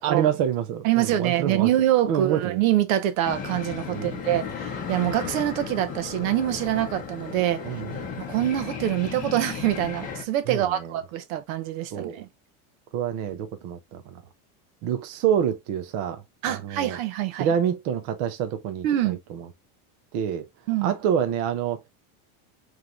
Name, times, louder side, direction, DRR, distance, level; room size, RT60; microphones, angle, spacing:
voice 1, 0.0-1.7 2.1-2.6 3.9-4.2 7.6-8.1 10.5-10.9 11.9-12.2 12.9-14.2 14.8-17.0 17.4-19.2 20.1-20.5 20.8-21.8, right 9 dB, 30° right, 0.4 m, -27 dB
voice 2, 0.8-7.6 8.2-12.3 16.4-17.5 18.8-19.2 20.7-20.9, right 13 dB, 70° right, 0.9 m, -25 dB
sound 1, 3.2-10.2, left 6 dB, 20° left, 0.8 m, -35 dB
5.0 x 3.1 x 2.4 m
supercardioid pair, 175°, 43 cm